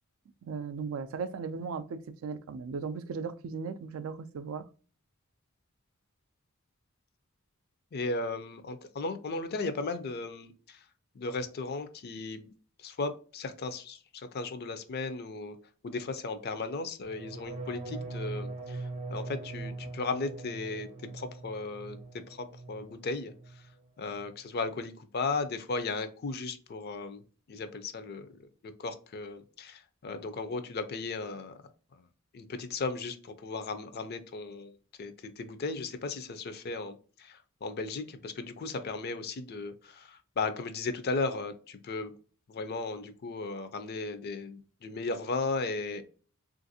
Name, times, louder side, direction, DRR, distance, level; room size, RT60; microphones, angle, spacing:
voice 1, 0.4-4.7, right 5 dB, 75° right, 0.3 m, -37 dB
voice 2, 7.9-10.8 11.1-12.5 12.8-15.6 15.8-20.9 21.1-23.6 24.0-31.5 31.9-32.0 32.3-42.1 42.5-46.0, left 3 dB, 50° left, 0.5 m, -36 dB
sound 1, 17.1-23.0 23.3-23.8 24.1-24.5, right 3 dB, 35° right, 0.6 m, -41 dB
3.4 x 2.5 x 2.6 m
head